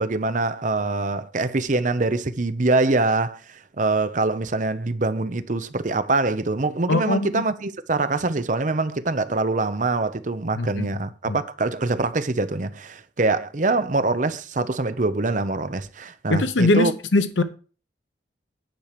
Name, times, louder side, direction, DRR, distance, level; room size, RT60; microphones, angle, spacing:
voice 1, 0.0-16.9, right 3 dB, 40° right, 0.7 m, -24 dB
voice 2, 6.9-7.4 10.6-10.9 11.3-11.4 16.3-17.4, left 2 dB, 80° left, 0.8 m, -21 dB
10.5 x 4.6 x 6.7 m
head